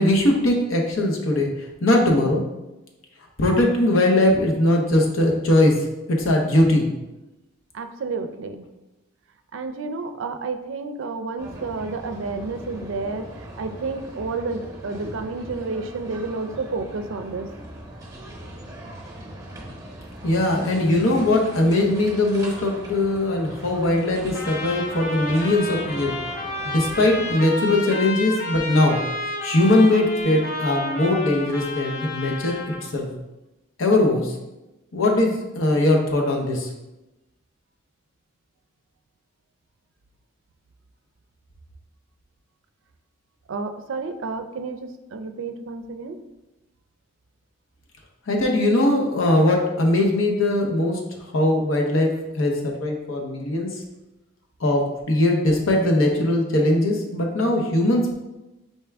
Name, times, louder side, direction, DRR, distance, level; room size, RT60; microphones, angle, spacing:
voice 1, 0.0-2.4 3.4-6.9 20.2-26.1 26.6-29.0 29.4-33.1 33.8-34.4 34.9-36.7 48.3-51.0 51.3-53.8 54.6-58.1, left 1 dB, 80° left, 1 dB, 0.8 m, -20 dB
voice 2, 7.7-8.7 9.5-17.5 43.5-46.2, right 3 dB, 75° right, 8 dB, 0.4 m, -30 dB
sound 1, 11.4-27.4, right 1 dB, 15° right, 0.8 m, -40 dB
Trumpet, 24.3-32.9, left 2 dB, 45° left, 0.9 m, -31 dB
4.3 x 3.5 x 3.4 m, 0.99 s
head